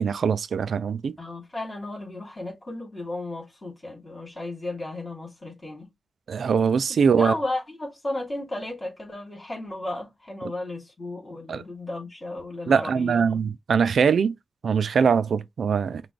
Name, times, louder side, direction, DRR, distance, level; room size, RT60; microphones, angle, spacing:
voice 1, 0.0-1.2 6.3-7.3 11.5-11.6 12.7-14.3 14.6-16.0, right 6 dB, 80° right, 0.4 m, -22 dB
voice 2, 1.2-5.9 6.7-13.4, left 2 dB, 30° left, 2.9 m, -34 dB
5.8 x 2.2 x 3.2 m
cardioid pair, 80°, 0 cm